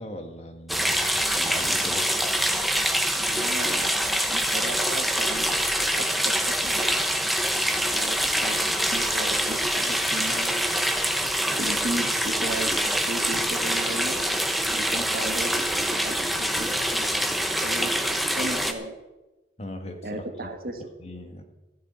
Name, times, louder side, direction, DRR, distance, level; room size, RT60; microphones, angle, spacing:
voice 1, 0.0-2.1 19.6-20.5 21.0-21.4, left 1 dB, 35° left, 5 dB, 1.6 m, -39 dB
sound 1, 0.7-18.7, equal, ahead, 0.9 m, -25 dB
voice 2, 3.1-7.1 7.9-10.7 11.5-14.2 14.7-17.2 17.6-17.9 18.3-18.9 20.0-20.8, right 1 dB, 55° right, 5 dB, 1.5 m, -35 dB
15.0 x 6.6 x 9.3 m, 1.1 s
head